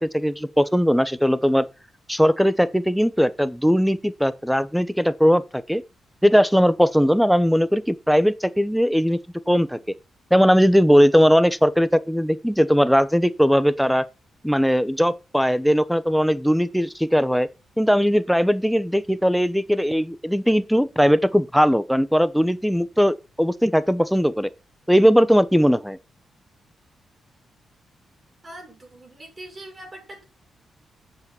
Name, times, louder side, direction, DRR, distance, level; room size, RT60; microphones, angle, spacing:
voice 1, 0.0-1.7 2.1-5.8 6.2-9.2 9.5-9.8 10.3-14.0 14.4-17.5 17.8-24.5 24.9-26.0, equal, ahead, 0.9 m, -19 dB
voice 2, 28.4-30.2, right 1 dB, 30° right, 5.9 m, -42 dB
8.5 x 7.2 x 5.9 m
cardioid pair, 95°, 0 cm